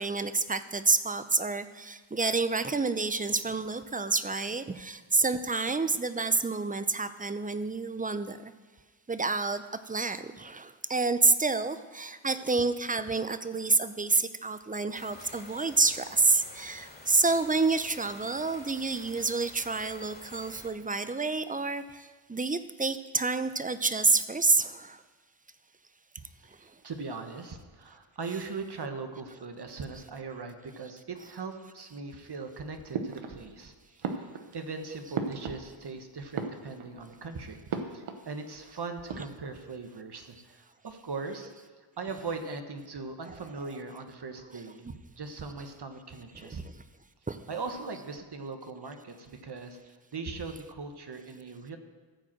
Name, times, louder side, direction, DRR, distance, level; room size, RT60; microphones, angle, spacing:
voice 1, 0.0-8.5 9.1-25.0 26.5-26.6 28.2-28.4 29.3-29.4 29.9-30.0 31.1-31.3 34.9-35.2 39.1-39.3 42.1-42.2 43.2-43.8 44.5-44.9 46.3-46.8 47.3-48.0, right 3 dB, 15° right, 12 dB, 0.6 m, -29 dB
sound 1, 14.9-20.7, left 2 dB, 20° left, 2.8 m, -49 dB
voice 2, 26.4-37.6 37.9-41.5 42.0-46.6 47.5-51.8, right 4 dB, 50° right, 6 dB, 1.3 m, -40 dB
sound 2, 32.9-33.7 34.0-35.9 36.2-37.1 37.7-38.3 38.6-38.7 38.9-39.7, right 5 dB, 75° right, 1.0 m, -37 dB
13.5 x 4.9 x 7.5 m, 1.4 s
cardioid pair, 55°, 49 cm